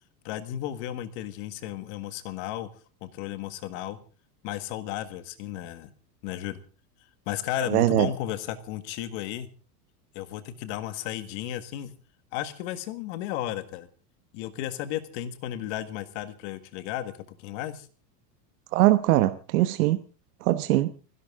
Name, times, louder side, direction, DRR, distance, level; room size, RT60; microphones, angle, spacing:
voice 1, 0.2-2.7 3.0-4.0 4.4-5.9 6.2-6.6 7.3-9.5 10.1-12.0 12.3-13.9 14.3-17.9, left 12 dB, 45° left, 12 dB, 1.8 m, -34 dB
voice 2, 7.7-8.1 18.7-20.0 20.4-20.9, right 16 dB, 60° right, 10 dB, 1.1 m, -21 dB
29.5 x 11.5 x 3.7 m, 0.36 s
supercardioid pair, 175°, 48 cm